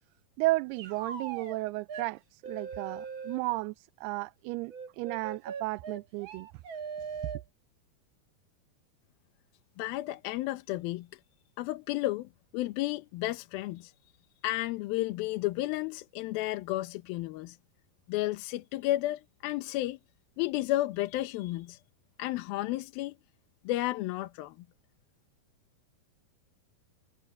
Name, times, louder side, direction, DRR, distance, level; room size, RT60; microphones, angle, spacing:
voice 1, 0.4-6.5, right 21 dB, 90° right, 2.6 m, -33 dB
sound 1, 0.8-1.6 1.9-2.1 2.4-3.4 4.7-7.4, right 6 dB, 50° right, 1.5 m, -40 dB
voice 2, 9.8-11.2 11.6-13.9 14.4-17.6 18.1-20.0 20.4-21.8 22.2-23.1 23.6-24.6, left 17 dB, 75° left, 2.5 m, -32 dB
omnidirectional pair, 4.5 m